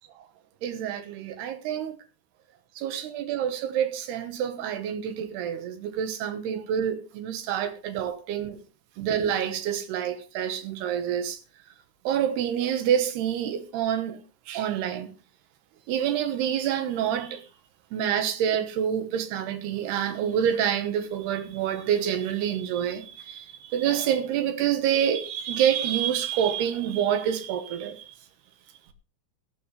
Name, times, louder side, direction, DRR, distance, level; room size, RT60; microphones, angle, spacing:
voice 1, 0.6-2.0 2.8-8.6 9.0-11.4 12.0-14.2 14.5-15.1 15.9-17.4 17.9-28.1, right 9 dB, 70° right, 2.6 m, -27 dB
14.5 x 12.5 x 3.2 m
omnidirectional pair, 6.0 m